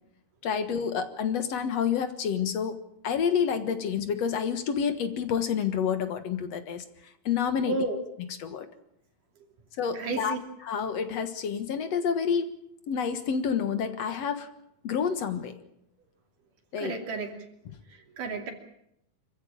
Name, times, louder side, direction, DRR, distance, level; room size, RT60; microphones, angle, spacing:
voice 1, 0.4-2.8 3.0-7.8 8.4-8.7 9.8-10.4 10.7-12.5 12.9-14.5 14.8-15.5 16.7-17.0, left 7 dB, 60° left, 9 dB, 2.3 m, -28 dB
voice 2, 7.7-8.0 9.9-10.4 16.8-17.3 17.9-18.5, right 3 dB, 90° right, 3 dB, 4.5 m, -32 dB
26.0 x 15.0 x 8.8 m, 0.78 s
omnidirectional pair, 3.6 m